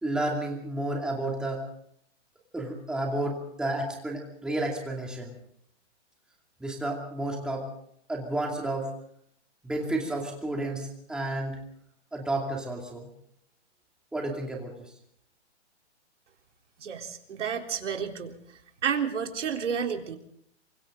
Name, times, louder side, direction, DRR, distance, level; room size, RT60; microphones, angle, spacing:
voice 1, 0.0-1.6 2.5-5.3 6.6-7.7 8.1-8.9 9.6-11.6 12.1-13.1 14.1-14.9, right 1 dB, ahead, 0 dB, 2.6 m, -31 dB
voice 2, 16.8-18.4 18.8-20.2, right 7 dB, 80° right, 3 dB, 3.8 m, -30 dB
28.0 x 24.0 x 3.9 m, 0.69 s
hypercardioid pair, 175°, 35 cm